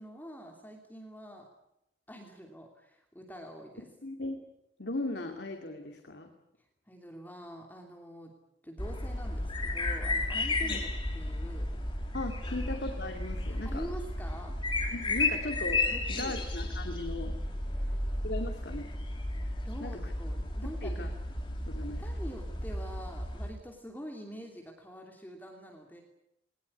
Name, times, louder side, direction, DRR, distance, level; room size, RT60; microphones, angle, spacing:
voice 1, 0.0-1.5 2.1-3.9 6.9-8.3 8.6-11.7 12.5-12.8 13.4-14.6 15.9-16.4 17.7-18.0 19.6-21.0 21.9-26.0, equal, 10° left, 2 dB, 2.8 m, -46 dB
voice 2, 4.0-4.4 4.8-6.3 10.6-10.8 12.1-13.9 14.9-17.3 18.2-18.9 19.8-20.1 20.8-21.1 21.7-22.0, left 2 dB, 70° left, 4 dB, 2.6 m, -37 dB
sound 1, 8.8-23.5, left 2 dB, 30° left, 3.1 m, -33 dB
21.0 x 19.5 x 9.9 m, 0.80 s
head